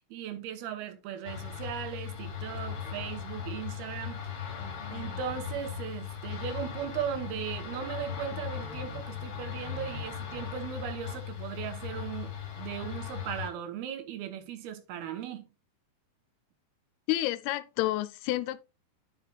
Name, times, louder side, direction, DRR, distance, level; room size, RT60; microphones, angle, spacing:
voice 1, 0.0-4.5 4.9-15.5, right 9 dB, 85° right, 2.9 m, -38 dB
sound 1, 1.2-13.5, left 8 dB, 55° left, 1.3 m, -38 dB
voice 2, 17.1-18.6, left 16 dB, 90° left, 2.5 m, -29 dB
10.0 x 5.9 x 2.3 m
omnidirectional pair, 4.4 m